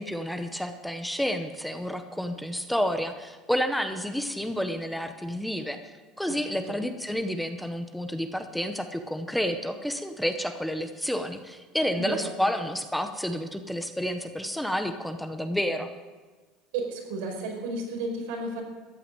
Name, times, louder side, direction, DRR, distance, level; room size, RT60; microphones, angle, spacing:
voice 1, 0.0-5.8 6.2-15.9, equal, ahead, 7 dB, 0.8 m, -30 dB
voice 2, 12.0-12.3 16.7-18.6, right 2 dB, 85° right, 0 dB, 5.3 m, -32 dB
14.0 x 9.1 x 9.0 m, 1.3 s
cardioid pair, 165°, 0 cm